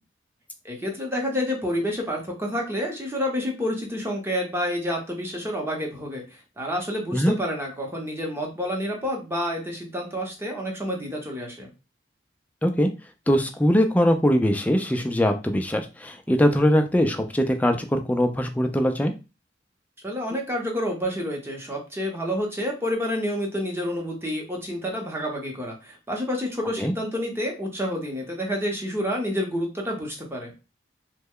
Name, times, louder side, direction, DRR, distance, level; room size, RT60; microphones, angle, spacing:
voice 1, 0.6-11.7 20.0-30.5, equal, 15° right, 1 dB, 0.8 m, -29 dB
voice 2, 13.3-19.1 26.8-26.9, equal, 10° left, 5 dB, 0.4 m, -21 dB
3.1 x 2.2 x 3.5 m, 0.29 s
head